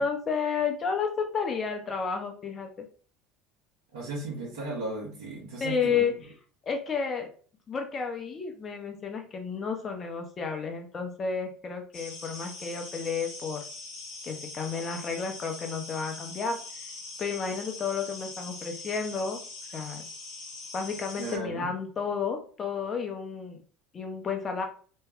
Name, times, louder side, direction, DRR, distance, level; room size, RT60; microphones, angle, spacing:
voice 1, 0.0-2.7 5.6-6.1 6.6-7.3 7.7-13.6 14.2-16.6 17.2-19.4 19.7-20.0 20.7-23.6 23.9-24.6, left 5 dB, 35° left, 4 dB, 0.9 m, -31 dB
voice 2, 3.9-6.1 21.1-21.7, right 2 dB, 80° right, -7 dB, 1.1 m, -36 dB
sound 1, 11.9-21.4, left 3 dB, 70° left, 1.2 m, -42 dB
3.2 x 2.3 x 3.4 m, 0.42 s
hypercardioid pair, 80°, 0 cm